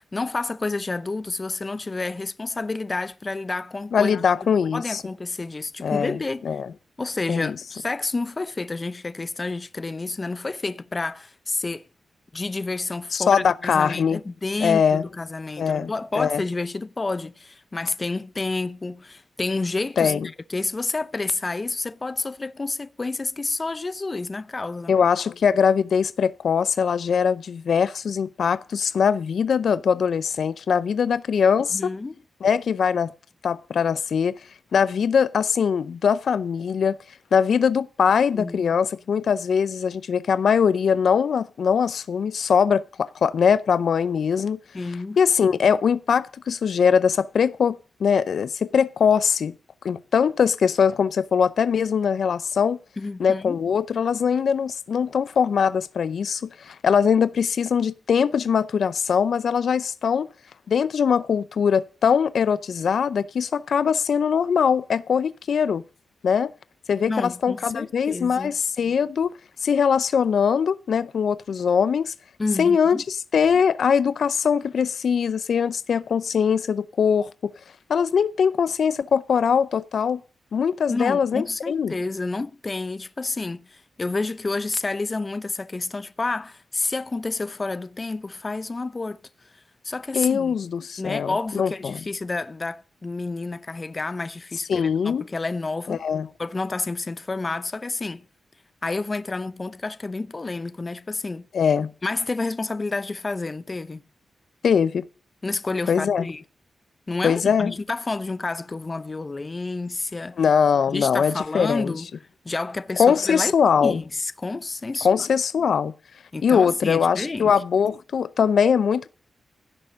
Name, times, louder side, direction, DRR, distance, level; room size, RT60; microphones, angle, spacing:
voice 1, 0.1-4.2 4.7-6.5 7.0-11.9 12.3-20.1 20.5-24.9 31.7-32.2 38.3-38.7 44.7-45.2 53.0-53.6 67.0-68.5 72.4-73.0 80.9-89.2 89.8-90.5 91.0-96.0 96.4-98.3 98.8-101.5 102.0-104.0 105.4-106.4 107.1-110.4 110.9-112.1 112.4-113.5 113.8-115.3 116.3-117.5, left 3 dB, 25° left, 0.7 m, -29 dB
voice 2, 3.9-5.0 5.8-6.2 6.4-6.7 7.3-7.5 13.1-14.2 14.6-15.0 15.6-16.4 20.0-20.3 24.9-31.9 32.4-33.1 33.4-34.4 34.7-37.0 37.3-44.6 45.2-49.5 49.8-52.8 53.2-60.3 60.7-65.8 66.2-66.5 66.9-69.3 69.6-72.1 72.6-77.5 77.9-80.2 80.5-81.9 90.1-92.0 94.7-95.2 95.9-96.3 101.5-101.9 104.6-105.1 105.9-106.3 107.2-107.7 110.4-111.9 113.0-114.0 115.0-115.9 116.4-119.1, left 7 dB, 70° left, 0.5 m, -21 dB
16.5 x 6.8 x 6.3 m
wide cardioid pair, 140°, 0 cm